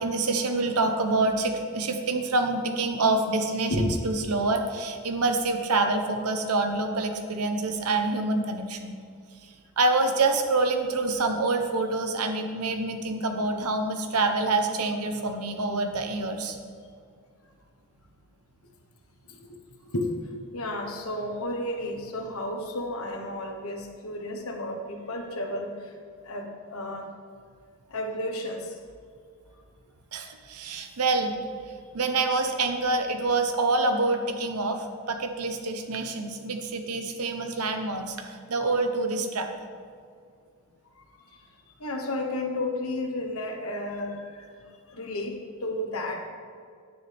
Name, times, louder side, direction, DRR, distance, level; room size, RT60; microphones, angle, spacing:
voice 1, 0.0-9.0 9.8-16.6 30.1-31.4 31.9-39.5, right 3 dB, 90° right, 6 dB, 1.0 m, -26 dB
voice 2, 20.5-25.7 26.3-27.1 27.9-28.6 41.8-44.2 44.9-45.4 45.6-46.3, left 1 dB, 75° left, 3 dB, 1.3 m, -32 dB
9.9 x 9.7 x 3.5 m, 2.2 s
head